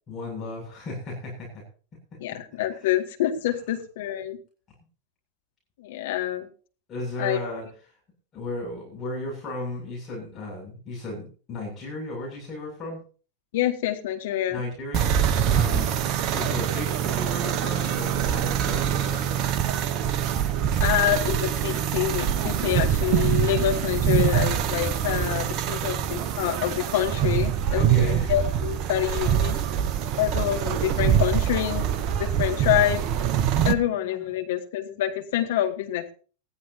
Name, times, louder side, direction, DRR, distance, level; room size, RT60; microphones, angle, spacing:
voice 1, 0.1-1.6 2.8-2.9 6.9-7.6 8.3-13.0 14.5-15.9 16.3-19.6 27.7-28.4 34.1-34.2, left 1 dB, 25° left, -2 dB, 7.4 m, -35 dB
voice 2, 2.2-4.4 5.8-6.5 7.2-7.4 13.5-14.6 15.7-15.9 20.8-29.6 30.2-33.1 33.6-36.0, left 13 dB, 55° left, 3 dB, 2.2 m, -26 dB
sound 1, 14.9-33.8, right 9 dB, 40° right, 0.9 m, -24 dB
20.0 x 14.0 x 2.9 m, 0.40 s
figure-of-eight pair, 90°, 0 cm